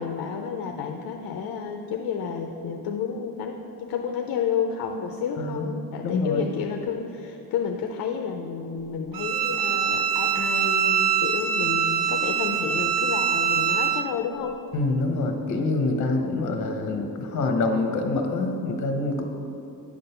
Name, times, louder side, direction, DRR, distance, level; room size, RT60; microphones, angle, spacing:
voice 1, 0.0-14.6, left 6 dB, 65° left, 4 dB, 0.6 m, -30 dB
voice 2, 6.0-6.5 14.7-19.2, left 2 dB, 50° left, 4 dB, 1.0 m, -26 dB
Bowed string instrument, 9.1-14.1, right 8 dB, 65° right, 0.6 m, -24 dB
9.8 x 3.9 x 6.8 m, 2.8 s
cardioid pair, 145°, 37 cm